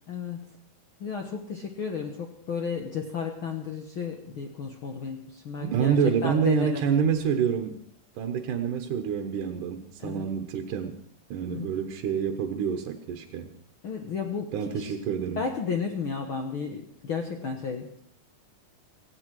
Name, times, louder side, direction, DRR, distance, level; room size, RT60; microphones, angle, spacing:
voice 1, 0.1-0.5 1.0-6.8 10.0-10.3 11.5-11.7 13.8-14.9 15.4-18.0, left 6 dB, 60° left, 3 dB, 1.4 m, -33 dB
voice 2, 5.6-7.8 8.2-11.0 11.3-13.5 14.5-15.4, right 7 dB, 75° right, 4 dB, 2.6 m, -27 dB
17.0 x 16.5 x 4.7 m, 0.67 s
omnidirectional pair, 3.9 m